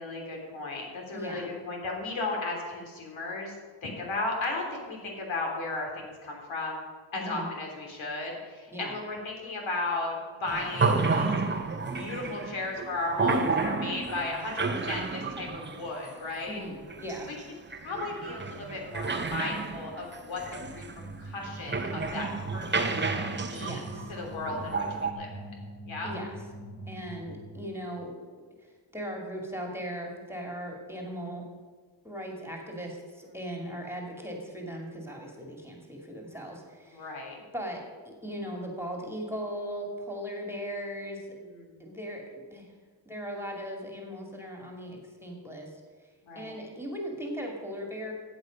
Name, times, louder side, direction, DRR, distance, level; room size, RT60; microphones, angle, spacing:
voice 1, 0.0-3.5 3.8-6.8 7.1-11.3 11.9-16.6 17.2-17.4 17.8-20.9 21.2-22.9 23.3-23.8 24.1-25.6 25.9-26.1 36.9-37.4 41.4-41.7 46.2-46.6, left 2 dB, 70° left, 0 dB, 3.2 m, -35 dB
voice 2, 1.1-1.6 7.1-7.5 8.7-8.9 16.5-17.3 23.6-24.1 26.0-26.4 26.9-28.1 28.6-31.4 32.0-37.1 37.5-41.2 41.8-42.7 43.1-45.7 46.4-48.1, equal, 5° right, 0 dB, 2.4 m, -38 dB
sound 1, 10.5-25.1, right 4 dB, 20° right, 0.9 m, -31 dB
sound 2, 20.6-27.9, right 1 dB, 20° left, 2.1 m, -43 dB
14.5 x 8.4 x 5.2 m, 1.5 s
cardioid pair, 100°, 49 cm